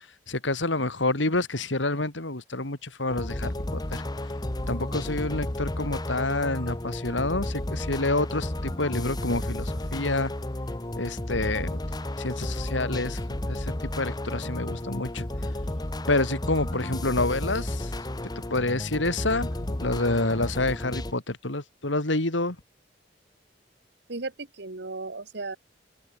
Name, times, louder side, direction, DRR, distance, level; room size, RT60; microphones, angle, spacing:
voice 1, 0.3-4.0 4.7-10.3 11.0-11.8 12.2-13.2 13.4-15.3 16.1-17.9 18.5-22.6, left 2 dB, 90° left, 3.3 m, -28 dB
sound 1, 3.1-21.1, left 1 dB, 20° left, 1.1 m, -32 dB
voice 2, 24.1-25.6, right 3 dB, 65° right, 1.5 m, -35 dB
open air
head